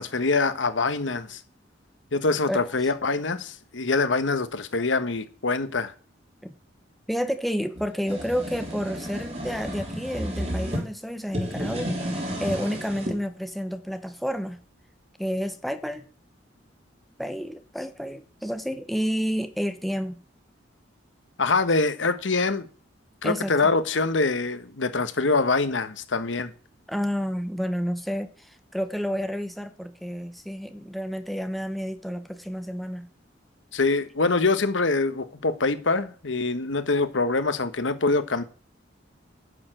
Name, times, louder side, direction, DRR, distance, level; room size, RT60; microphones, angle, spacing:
voice 1, 0.0-1.4 2.1-5.9 21.4-22.7 23.2-26.5 33.7-38.4, left 3 dB, 80° left, 1.3 m, -24 dB
voice 2, 7.1-14.6 15.2-16.0 17.2-20.2 23.2-23.7 26.9-33.1, equal, ahead, 1.0 m, -30 dB
sound 1, 7.8-10.8 11.3-13.2, equal, 35° right, 4.5 m, -32 dB
10.5 x 6.9 x 7.8 m
head